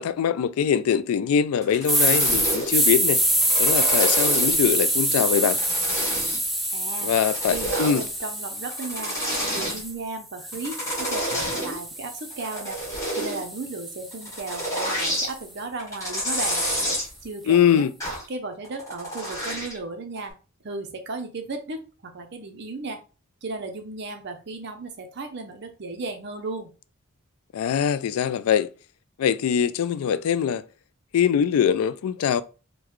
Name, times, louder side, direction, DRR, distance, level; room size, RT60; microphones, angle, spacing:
voice 1, 0.0-3.2 3.6-5.6 7.0-8.0 17.5-17.9 27.5-28.7 29.2-30.6 31.1-32.4, left 8 dB, 80° left, 0.3 m, -22 dB
sound 1, 1.6-2.8 3.3-4.7 5.2-6.5 6.9-8.1 8.6-9.8 10.5-11.8 12.2-13.4 14.1-15.3 15.8-17.1 18.0-18.3 18.6-19.8 20.2-20.3, equal, 15° left, 1.2 m, -29 dB
sound 2, 1.8-9.9 10.4-14.6, right 1 dB, ahead, 0.4 m, -25 dB
voice 2, 6.7-7.2 7.5-9.2 9.5-12.8 13.1-16.7 17.2-17.9 18.3-20.3 20.6-23.0 23.4-26.7, right 3 dB, 50° right, 0.6 m, -35 dB
3.7 x 2.2 x 3.1 m
head